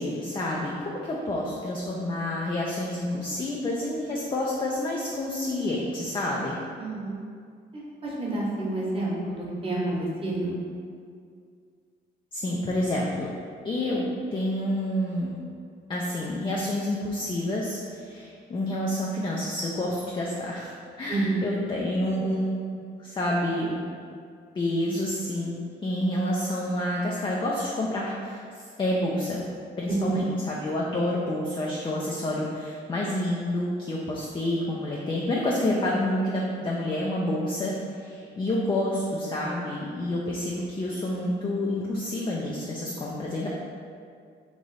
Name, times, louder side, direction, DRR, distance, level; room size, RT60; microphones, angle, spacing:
voice 1, 0.0-6.6 12.3-13.3 13.6-15.4 15.9-22.5 23.0-23.8 24.6-28.4 28.8-29.5 29.8-43.5, left 1 dB, 25° left, -4 dB, 0.4 m, -28 dB
voice 2, 6.8-7.2 7.7-7.8 8.2-9.8 10.2-10.5 21.1-21.4 29.9-30.2, right 2 dB, 25° right, -6 dB, 1.1 m, -28 dB
3.1 x 2.5 x 4.0 m, 2.2 s
cardioid pair, 90°, 20 cm